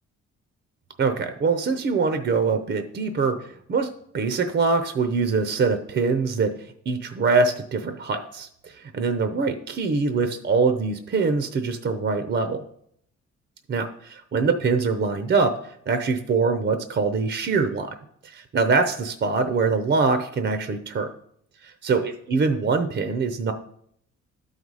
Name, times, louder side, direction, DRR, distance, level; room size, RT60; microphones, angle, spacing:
voice 1, 1.0-3.9 4.1-12.6 13.7-15.5 15.9-17.9 18.2-21.1 21.6-23.5, right 4 dB, 40° right, 8 dB, 0.7 m, -23 dB
12.0 x 4.1 x 4.8 m, 0.70 s
cardioid pair, 90°, 30 cm